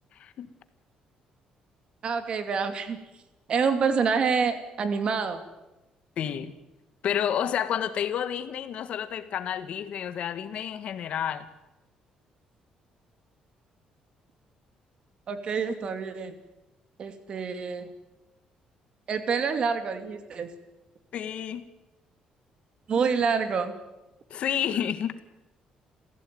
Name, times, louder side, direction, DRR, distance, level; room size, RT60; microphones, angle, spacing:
voice 1, 0.1-0.5 6.2-6.5 7.0-11.4 21.1-21.7 24.3-25.1, left 9 dB, 55° left, 11 dB, 1.7 m, -30 dB
voice 2, 2.0-3.0 3.5-5.4 15.3-16.3 17.0-17.9 19.1-20.5 22.9-23.8, right 5 dB, 45° right, 9 dB, 2.6 m, -27 dB
28.0 x 16.0 x 9.4 m, 1.0 s
cardioid pair, 145°, 2 cm